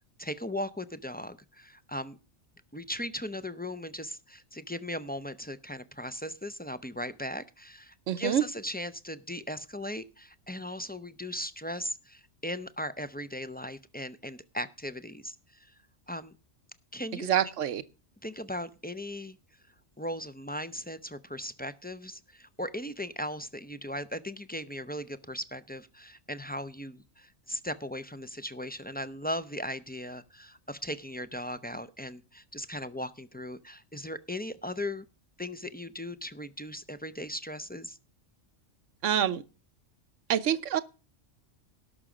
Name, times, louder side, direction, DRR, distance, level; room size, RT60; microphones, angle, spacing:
voice 1, 0.2-2.2 2.7-15.7 16.1-16.3 16.9-17.5 18.2-19.4 20.0-35.0 35.4-38.0, left 1 dB, 15° left, 0.3 m, -38 dB
voice 2, 8.1-8.4 17.2-17.8 39.0-39.4 40.3-40.8, right 10 dB, 85° right, 1.2 m, -26 dB
18.0 x 6.2 x 5.0 m
omnidirectional pair, 1.3 m